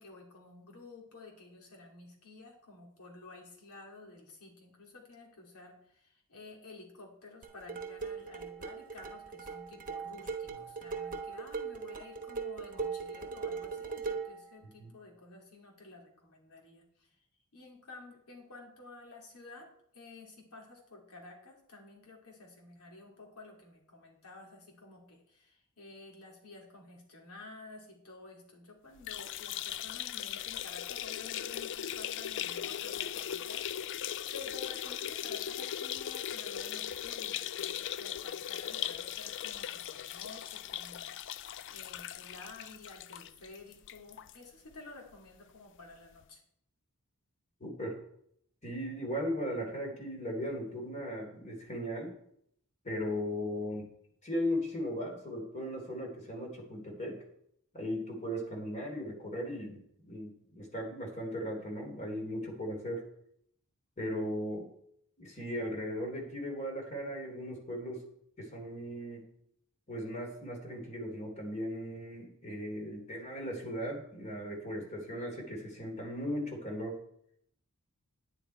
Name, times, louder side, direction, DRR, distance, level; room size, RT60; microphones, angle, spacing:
voice 1, 0.0-17.1 17.5-19.7 19.9-33.7 34.3-41.1 41.7-46.4, left 3 dB, 80° left, -1 dB, 2.9 m, -52 dB
sound 1, 7.4-14.4, right 5 dB, 40° right, 1.1 m, -39 dB
sound 2, 29.0-44.4 44.7-44.8 45.1-45.2 46.2-46.3, left 10 dB, 55° left, 0.4 m, -39 dB
voice 2, 47.6-48.0 48.6-52.1 52.8-53.9 54.2-57.2 57.7-63.0 64.0-64.7 65.2-68.0 68.4-69.3 69.9-77.0, equal, 35° left, 1 dB, 3.2 m, -37 dB
9.9 x 9.8 x 4.5 m, 0.71 s
head